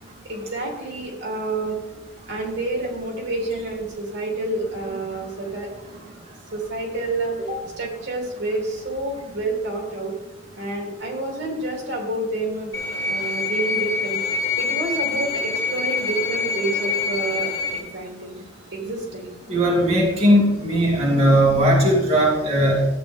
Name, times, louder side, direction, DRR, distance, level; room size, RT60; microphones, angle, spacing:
voice 1, 0.2-1.8 2.3-5.7 6.5-10.2 10.6-12.7 13.1-18.4 18.7-19.3, right 2 dB, 60° right, -1 dB, 3.3 m, -29 dB
sound 1, 12.7-17.8, left 4 dB, 20° left, 4.3 m, -25 dB
voice 2, 19.5-22.9, equal, 30° right, -5 dB, 2.6 m, -18 dB
15.0 x 8.7 x 3.6 m, 1.0 s
head